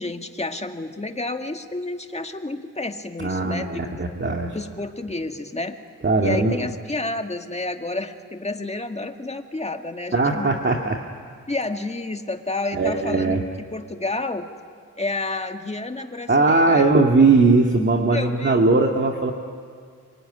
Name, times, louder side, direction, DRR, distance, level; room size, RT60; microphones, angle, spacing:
voice 1, 0.0-4.1 4.5-5.8 6.2-10.6 11.5-13.4 13.7-14.5 15.0-16.8 18.1-18.6, left 2 dB, 20° left, 6 dB, 2.0 m, -30 dB
voice 2, 3.2-4.6 6.0-6.7 10.1-11.0 12.7-13.4 16.3-19.3, right 3 dB, 35° right, 2 dB, 2.1 m, -19 dB
26.5 x 22.5 x 9.9 m, 2.1 s
cardioid pair, 75°, 34 cm